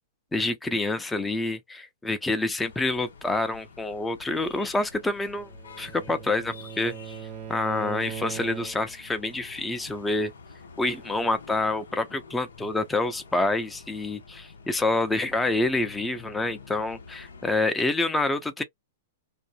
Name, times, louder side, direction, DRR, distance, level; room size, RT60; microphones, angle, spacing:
voice 1, 0.3-5.5 5.8-7.1 7.5-10.3 10.8-18.6, left 2 dB, 10° left, 0.5 m, -27 dB
sound 1, 2.6-17.6, left 5 dB, 80° left, 0.7 m, -48 dB
Bowed string instrument, 5.1-9.1, right 9 dB, 40° right, 0.6 m, -39 dB
2.5 x 2.1 x 2.8 m
hypercardioid pair, 115°, 0 cm